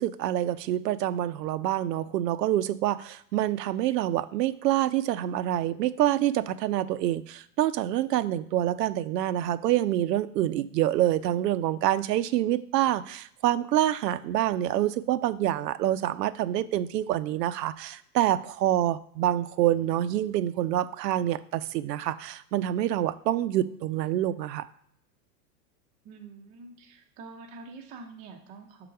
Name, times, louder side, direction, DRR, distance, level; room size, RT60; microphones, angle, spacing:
voice 1, 0.0-24.6, right 13 dB, 90° right, 12 dB, 0.6 m, -26 dB
voice 2, 26.0-28.9, right 4 dB, 15° right, 2 dB, 0.4 m, -46 dB
5.7 x 3.9 x 5.6 m, 0.67 s
supercardioid pair, 155°, 47 cm